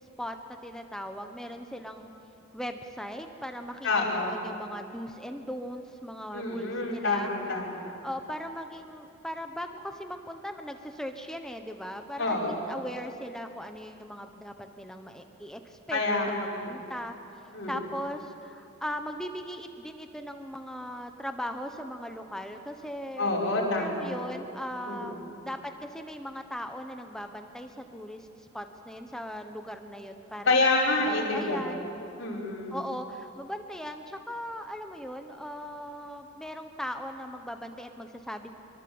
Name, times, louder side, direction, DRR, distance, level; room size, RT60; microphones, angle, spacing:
voice 1, 0.2-2.1 2.5-7.3 8.0-16.0 16.4-17.2 17.7-23.3 23.8-28.3 28.5-30.6 31.1-31.9 32.7-38.5, equal, 5° left, 5 dB, 1.1 m, -39 dB
voice 2, 3.8-4.4 6.3-7.9 12.2-12.7 15.9-16.8 17.5-17.7 23.2-24.3 24.8-25.2 30.5-31.8 32.2-32.8, left 2 dB, 60° left, -3 dB, 5.3 m, -28 dB
24.0 x 23.5 x 7.9 m, 2.7 s
head